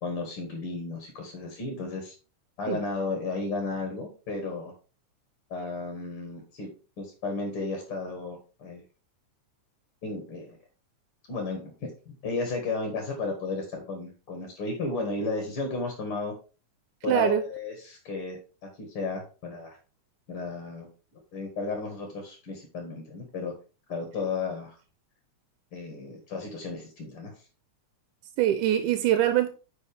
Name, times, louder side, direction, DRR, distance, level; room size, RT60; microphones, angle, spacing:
voice 1, 0.0-2.1 2.6-4.7 5.5-6.7 7.0-8.8 10.0-10.6 11.3-16.3 17.0-19.8 20.3-20.9 21.3-23.5 23.9-24.8 25.7-27.3, left 3 dB, 50° left, 2.4 m, -34 dB
voice 2, 17.1-17.4 28.4-29.5, right 11 dB, 85° right, 2.2 m, -23 dB
9.8 x 5.1 x 3.5 m
omnidirectional pair, 3.6 m